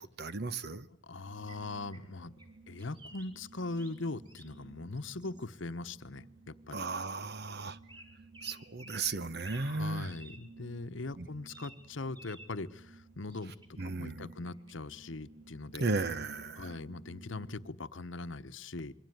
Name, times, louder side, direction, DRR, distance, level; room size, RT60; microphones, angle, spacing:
voice 1, 0.0-0.9 6.7-7.8 8.4-10.1 11.2-11.3 13.8-14.3 15.8-16.7, right 3 dB, 55° right, 1.1 m, -35 dB
voice 2, 1.0-2.3 2.7-6.8 9.6-15.9 16.6-18.9, left 2 dB, 75° left, 1.1 m, -41 dB
sound 1, 1.1-17.7, right 3 dB, 75° right, 2.2 m, -56 dB
sound 2, 1.5-2.5 2.8-4.6 4.9-5.7 7.8-9.1 9.4-9.7 10.1-10.5 11.4-11.8 12.1-12.6 13.3-13.8 14.4-14.7, right 1 dB, 25° right, 4.5 m, -54 dB
26.5 x 22.5 x 9.3 m
head